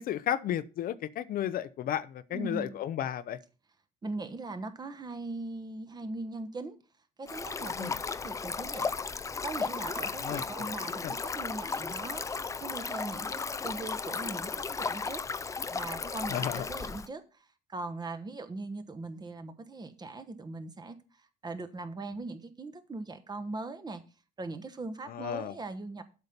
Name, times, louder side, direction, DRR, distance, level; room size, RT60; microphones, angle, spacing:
voice 1, 0.0-3.4 7.8-8.0 10.2-10.7 11.0-11.1 16.3-16.7 25.1-25.5, left 10 dB, 60° left, 0.6 m, -33 dB
voice 2, 2.3-2.7 4.0-6.8 7.2-8.9 9.4-15.2 15.7-21.0 21.4-24.0 24.4-26.0, right 3 dB, 25° right, 1.1 m, -40 dB
Stream, 7.3-17.1, left 4 dB, 20° left, 0.4 m, -35 dB
8.1 x 5.6 x 6.6 m
cardioid pair, 110°, 17 cm